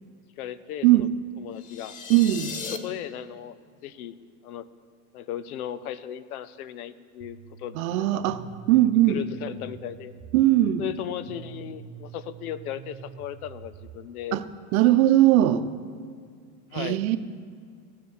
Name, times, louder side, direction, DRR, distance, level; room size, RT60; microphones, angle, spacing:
voice 1, 0.4-1.1 1.4-2.0 2.8-3.6 3.8-4.2 4.4-4.7 5.1-8.2 9.1-10.1 10.8-14.4 16.7-17.0, left 10 dB, 90° left, 16 dB, 0.8 m, -36 dB
sound 1, 1.6-2.8, left 6 dB, 20° left, 0.5 m, -36 dB
voice 2, 2.1-2.5 7.7-8.4 8.7-9.2 10.3-10.8 14.3-14.4 14.7-15.7 16.7-17.2, right 14 dB, 75° right, 11 dB, 0.8 m, -20 dB
sound 2, 7.2-14.1, right 9 dB, 40° right, 0.6 m, -45 dB
15.0 x 7.0 x 6.5 m, 2.1 s
supercardioid pair, 150°, 43 cm